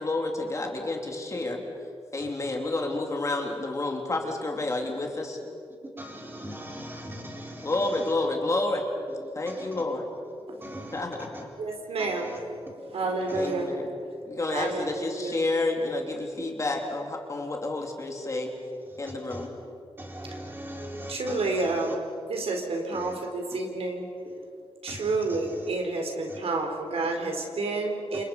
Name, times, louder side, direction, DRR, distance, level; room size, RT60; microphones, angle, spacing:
voice 1, 0.0-1.6 2.1-5.4 7.6-8.9 9.3-10.0 10.9-11.3 13.3-13.9 14.2-18.5 19.0-19.5, left 2 dB, 30° left, 1 dB, 2.9 m, -29 dB
voice 2, 6.0-8.1 9.1-9.2 9.5-9.7 10.6-11.0 11.3-11.4 12.0-12.4 12.7-12.9 13.3-13.5 14.6-14.7 18.9-19.0 19.3-19.5 20.0-21.9 22.9-23.1 24.2-24.3 24.9-25.6 26.3-26.4, equal, 20° right, 0 dB, 4.4 m, -40 dB
voice 3, 11.6-12.4 12.9-13.8 14.5-15.4 21.1-24.1 24.8-28.2, right 3 dB, 80° right, 2 dB, 4.4 m, -29 dB
28.5 x 28.5 x 5.5 m, 2.4 s
wide cardioid pair, 165°, 10 cm